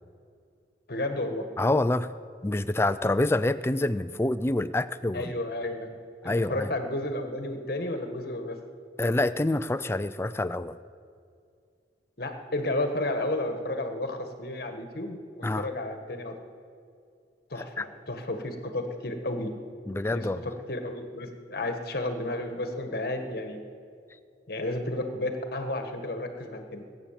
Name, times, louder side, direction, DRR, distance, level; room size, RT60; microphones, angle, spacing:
voice 1, 0.9-1.4 5.1-6.0 6.2-8.6 12.2-16.3 17.5-19.5 20.1-23.6 24.5-26.8, left 1 dB, 60° left, 5 dB, 1.5 m, -32 dB
voice 2, 1.6-2.1 2.4-5.3 6.2-6.7 9.0-10.8 15.4-15.7 17.6-17.8 19.9-20.4, left 2 dB, 15° left, 13 dB, 0.4 m, -27 dB
22.0 x 8.5 x 7.4 m, 2.4 s
head